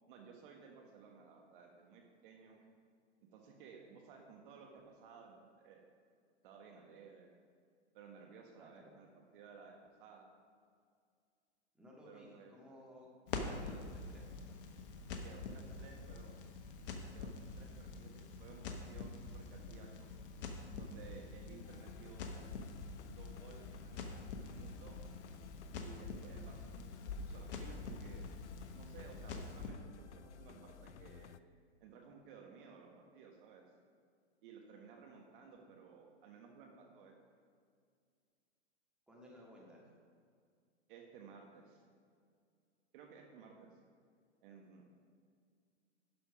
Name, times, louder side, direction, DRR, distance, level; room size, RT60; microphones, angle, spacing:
voice 1, 0.1-2.6 3.3-5.8 6.4-7.3 7.9-10.3 12.0-12.5 15.2-16.3 16.9-20.1 20.7-22.4 23.0-25.0 25.7-28.2 28.7-31.3 31.8-33.6 34.4-37.1 40.9-41.8 42.9-43.7 44.4-44.8, right 6 dB, 45° right, 1 dB, 1.4 m, -57 dB
voice 2, 8.6-9.0 11.7-13.1 13.6-14.6 14.9-16.1 39.1-39.8, equal, 5° right, -4 dB, 1.9 m, -59 dB
Crackle, 13.3-29.7, left 3 dB, 50° left, 1.2 m, -46 dB
sound 1, 21.6-31.4, left 9 dB, 80° left, 0.5 m, -57 dB
11.5 x 5.9 x 4.9 m, 2.2 s
hypercardioid pair, 120°, 35 cm